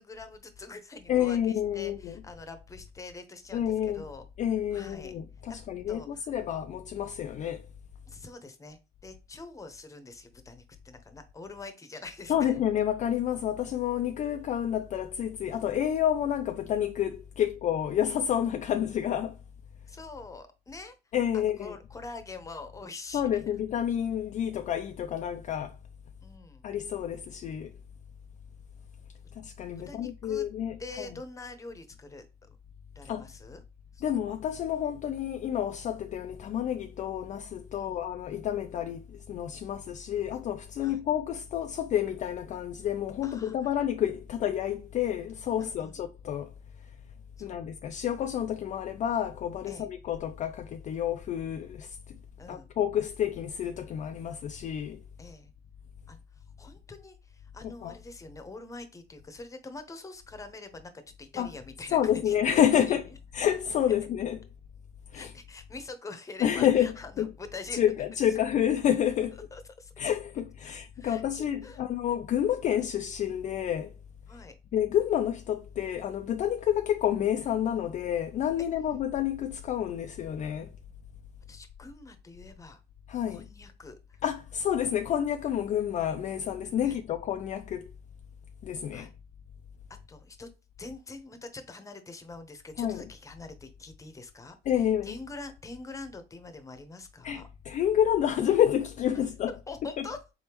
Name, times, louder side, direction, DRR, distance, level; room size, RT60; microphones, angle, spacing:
voice 1, 0.0-4.2 4.7-5.1 5.5-5.6 5.9-6.3 8.1-12.5 19.9-20.9 21.3-23.2 26.2-26.7 29.9-30.5 30.8-32.6 32.9-33.6 33.9-34.0 37.7-38.1 40.8-41.0 43.2-43.7 45.6-46.0 47.4-47.6 49.7-49.9 52.4-52.7 55.2-55.5 56.1-56.2 56.6-60.9 61.2-62.3 62.9-63.0 65.1-67.8 69.5-69.9 70.6-71.8 74.3-74.5 81.5-82.8 83.3-84.2 86.8-87.0 88.9-89.1 90.1-90.5 90.8-97.5 99.7-100.2, left 3 dB, 20° left, 0.8 m, -45 dB
voice 2, 1.1-2.2 3.5-4.0 4.4-7.7 12.3-19.4 21.1-21.7 23.1-25.8 26.6-27.7 29.4-31.1 33.1-33.3 34.0-46.5 47.4-52.2 52.5-55.0 57.6-57.9 61.4-61.5 61.9-64.4 65.1-65.3 66.4-67.3 67.7-69.4 70.0-73.9 74.7-80.7 83.1-83.5 84.2-87.9 88.6-89.1 92.8-93.0 94.7-95.2 97.2-99.5 100.0-100.1, left 10 dB, 45° left, 0.4 m, -29 dB
4.1 x 3.5 x 2.9 m
cardioid pair, 110°, 17 cm